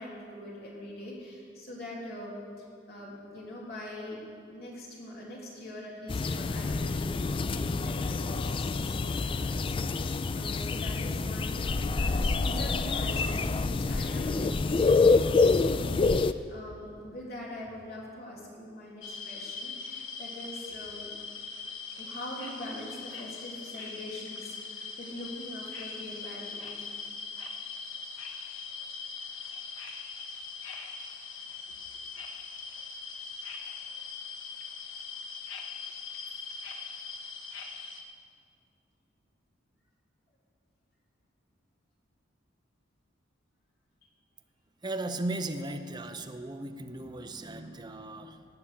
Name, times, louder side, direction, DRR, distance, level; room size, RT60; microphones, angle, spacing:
voice 1, 0.0-4.2 4.5-21.1 22.0-26.9, left 1 dB, 50° left, -4 dB, 3.5 m, -43 dB
sound 1, 6.1-16.3, left 3 dB, 25° left, 0.3 m, -27 dB
sound 2, 19.0-38.0, left 4 dB, 85° left, 1.4 m, -41 dB
voice 2, 44.8-48.5, right 2 dB, 20° right, 6 dB, 0.7 m, -36 dB
19.0 x 7.0 x 7.0 m, 2.2 s
head